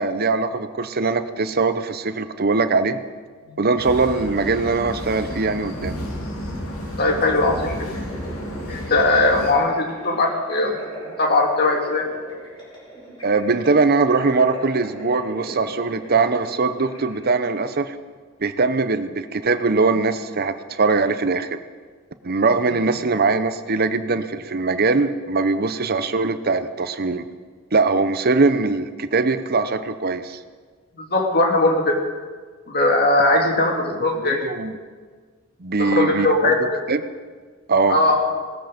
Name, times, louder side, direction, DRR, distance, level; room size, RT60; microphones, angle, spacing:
voice 1, 0.0-3.0 3.6-5.9 13.2-17.9 18.4-21.6 22.2-27.2 27.7-30.4 33.3-33.4 34.1-34.8 35.6-37.0 37.7-38.0, right 3 dB, 45° right, 10 dB, 0.8 m, -21 dB
sound 1, 3.8-9.5, equal, 75° left, 2.7 m, -32 dB
voice 2, 7.0-7.9 8.7-10.8 11.2-12.1 31.0-32.0 32.7-34.4 35.8-36.8 37.9-38.3, left 2 dB, 50° left, 2 dB, 2.3 m, -19 dB
sound 2, 7.2-17.6, right 1 dB, 25° left, 5.7 m, -41 dB
18.0 x 14.0 x 5.2 m, 1.5 s
head